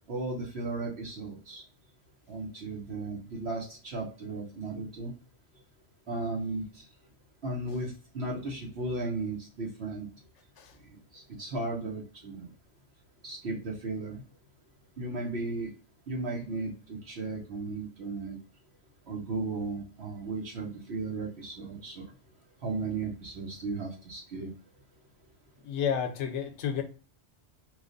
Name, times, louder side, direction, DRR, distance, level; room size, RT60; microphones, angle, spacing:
voice 1, 0.1-1.6 2.3-5.1 6.1-6.8 7.4-10.1 11.1-12.5 13.2-14.2 15.0-15.7 16.1-18.4 19.1-22.1 22.6-24.5, right 3 dB, 65° right, 1.1 m, -35 dB
voice 2, 25.6-26.8, left 8 dB, 80° left, 0.9 m, -31 dB
3.1 x 2.3 x 3.7 m
omnidirectional pair, 1.2 m